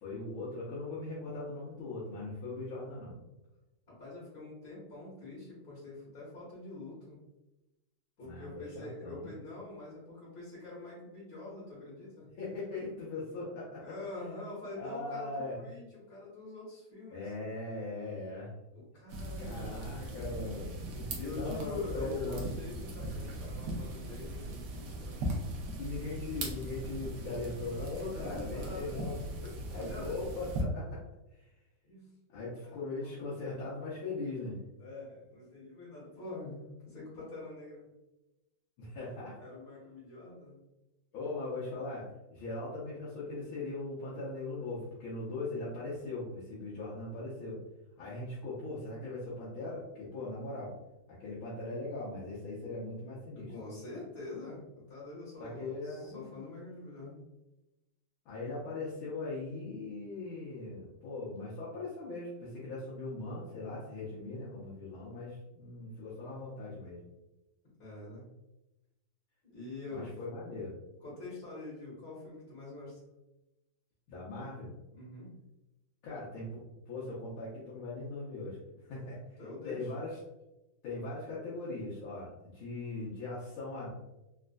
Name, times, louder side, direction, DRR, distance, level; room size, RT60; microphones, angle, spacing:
voice 1, 0.0-3.2 8.2-9.3 12.4-13.9 14.8-15.6 17.1-18.5 19.4-22.4 25.8-29.1 29.7-31.0 31.3-31.5 32.3-34.6 38.8-39.4 41.1-47.6 48.0-50.8 51.1-53.5 55.4-56.4 58.2-67.0 69.9-70.7 74.1-74.7 76.0-78.6 78.8-79.4 79.6-80.2 80.8-83.9, left 2 dB, 80° left, -8 dB, 1.7 m, -40 dB
voice 2, 3.9-7.2 8.2-12.3 13.8-17.6 18.9-20.0 21.1-25.2 28.1-28.9 29.8-30.4 31.8-32.1 32.4-33.2 34.8-37.9 39.4-40.6 53.5-57.2 67.8-68.2 69.5-70.2 71.0-73.0 74.9-75.3 78.9-79.0 79.4-79.9, left 2 dB, 55° left, -11 dB, 2.0 m, -45 dB
sound 1, 19.1-30.6, right 1 dB, 70° right, 1.1 m, -39 dB
4.1 x 2.5 x 2.2 m, 0.98 s
omnidirectional pair, 2.3 m